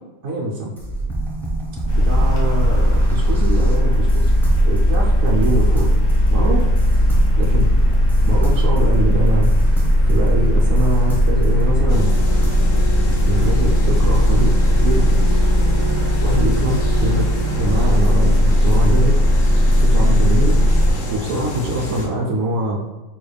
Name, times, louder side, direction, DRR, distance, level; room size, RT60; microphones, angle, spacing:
voice 1, 0.2-0.7 1.9-4.3 4.6-5.9 6.3-6.7 7.4-7.7 8.2-9.5 10.0-12.1 13.3-15.2 16.2-17.3 17.6-19.2 19.7-20.6 21.1-22.8, right 1 dB, 65° right, -4 dB, 0.9 m, -23 dB
sound 1, 0.8-13.3, right 2 dB, ahead, 0.6 m, -27 dB
sound 2, 1.9-20.9, equal, 40° left, 0.9 m, -16 dB
sound 3, 11.9-22.1, left 2 dB, 70° left, 1.1 m, -29 dB
5.7 x 3.3 x 2.3 m, 1.1 s
omnidirectional pair, 1.4 m